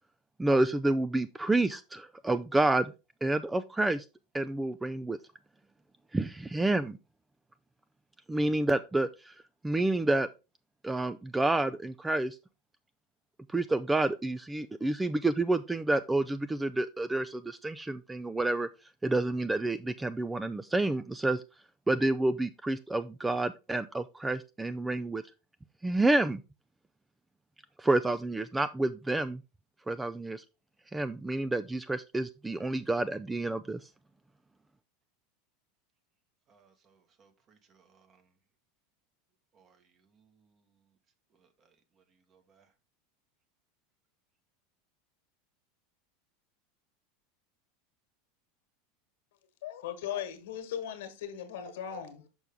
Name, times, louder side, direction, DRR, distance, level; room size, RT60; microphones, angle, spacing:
voice 1, 0.4-2.9 3.2-4.0 4.3-5.2 6.1-7.0 8.3-9.4 9.6-10.3 10.8-12.4 13.5-18.7 19.0-21.4 21.9-25.2 25.8-26.4 27.8-29.4 29.9-30.4 30.9-33.9, right 2 dB, 10° right, 0.3 m, -29 dB
voice 2, 36.5-38.3 39.5-40.6 41.3-42.7, right 5 dB, 35° right, 1.3 m, -67 dB
voice 3, 49.6-52.3, left 9 dB, 75° left, 1.4 m, -38 dB
6.1 x 5.4 x 3.5 m
hypercardioid pair, 95°, 0 cm